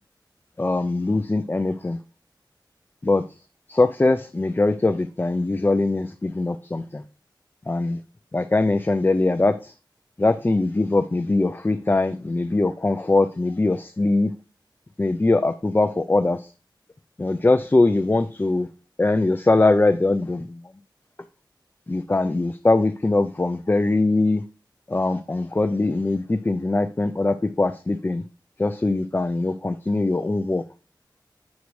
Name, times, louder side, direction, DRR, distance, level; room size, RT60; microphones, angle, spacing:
voice 1, 0.6-2.0 3.0-3.2 3.7-6.8 7.7-8.0 8.3-9.5 10.2-14.3 15.0-16.4 17.2-18.7 19.0-20.4 21.9-24.4 24.9-28.2 28.6-30.6, left 2 dB, 25° left, 9 dB, 0.4 m, -21 dB
8.3 x 6.2 x 3.1 m, 0.34 s
wide cardioid pair, 80°, 8 cm